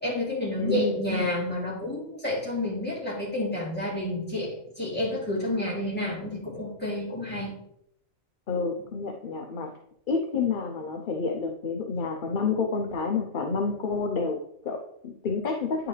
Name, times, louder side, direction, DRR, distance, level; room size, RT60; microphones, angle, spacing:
voice 1, 0.0-4.5 4.8-7.5, left 1 dB, 5° left, -7 dB, 2.9 m, -30 dB
voice 2, 0.6-1.0 8.5-9.7 10.1-15.9, left 4 dB, 50° left, 2 dB, 0.7 m, -29 dB
9.7 x 4.7 x 3.2 m, 0.74 s
omnidirectional pair, 1.4 m